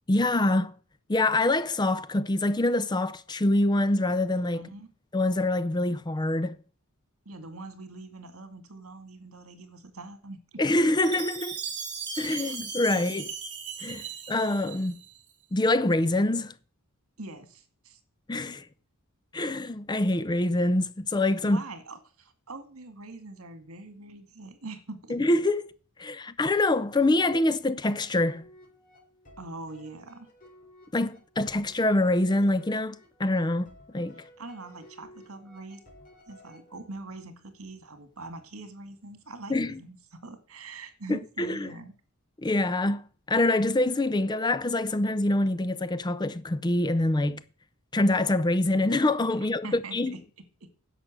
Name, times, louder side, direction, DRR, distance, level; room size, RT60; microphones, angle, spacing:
voice 1, 0.1-0.7 1.1-4.6 5.1-6.6 10.6-11.6 12.2-13.2 13.8-15.0 15.5-16.5 18.3-18.6 19.3-21.6 25.1-25.7 26.0-28.4 30.9-33.7 33.9-34.2 39.5-39.8 41.1-41.7 42.4-47.4 47.9-50.1, left 2 dB, 20° left, 0.5 m, -25 dB
voice 2, 4.5-4.9 7.3-10.6 12.2-12.6 12.9-13.0 13.8-14.2 17.2-18.0 21.4-25.2 29.4-30.3 34.2-35.8 36.3-41.9 49.6-50.2 50.6-50.7, right 3 dB, 75° right, 2.1 m, -43 dB
Chime, 11.0-15.2, right 5 dB, 55° right, 3.2 m, -37 dB
sound 1, 27.9-37.2, left 1 dB, 40° left, 4.1 m, -55 dB
10.5 x 6.8 x 7.7 m
head